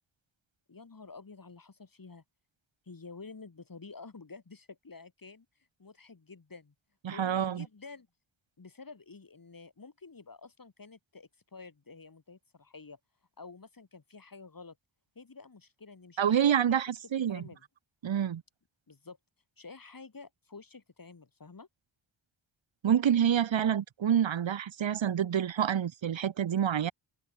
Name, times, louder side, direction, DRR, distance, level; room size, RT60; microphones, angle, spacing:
voice 1, 0.7-2.2 2.8-5.5 5.8-6.7 7.1-8.1 8.6-13.0 13.4-14.8 15.1-17.0 17.3-17.6 18.9-19.2 19.6-21.7, left 4 dB, 45° left, 8.0 m, -50 dB
voice 2, 7.0-7.7 16.2-17.4 18.0-18.4 22.8-26.9, right 9 dB, 70° right, 1.3 m, -27 dB
cardioid pair, 70°, 47 cm